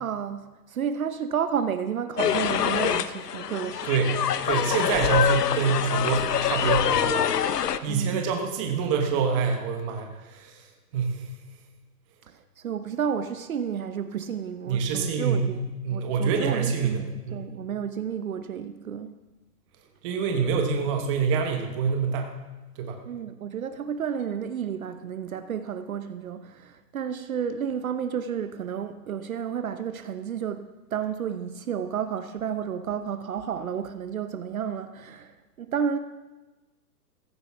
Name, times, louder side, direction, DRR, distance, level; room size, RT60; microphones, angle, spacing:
voice 1, 0.0-3.9 7.8-8.3 12.3-17.0 17.3-19.1 23.1-36.0, right 8 dB, 60° right, 9 dB, 0.9 m, -31 dB
sound 1, 2.2-7.8, left 9 dB, 75° left, 0.9 m, -25 dB
voice 2, 3.8-4.2 4.4-10.6 10.9-11.3 14.7-17.5 20.0-22.3 22.8-23.0, right 5 dB, 20° right, 3 dB, 1.2 m, -26 dB
15.0 x 15.0 x 3.6 m, 1.1 s
hypercardioid pair, 160°, 48 cm